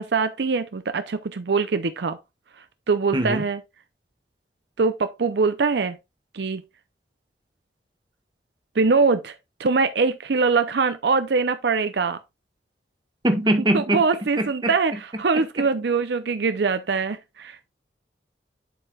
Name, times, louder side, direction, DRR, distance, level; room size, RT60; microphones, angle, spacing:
voice 1, 0.0-2.2 2.9-3.6 4.8-6.0 6.3-6.6 8.8-12.2 13.7-17.6, right 4 dB, 75° right, 0.6 m, -23 dB
voice 2, 3.1-3.4 13.2-14.0 14.4-14.7 15.6-15.7, right 1 dB, 25° right, 1.2 m, -22 dB
11.0 x 4.7 x 2.3 m
head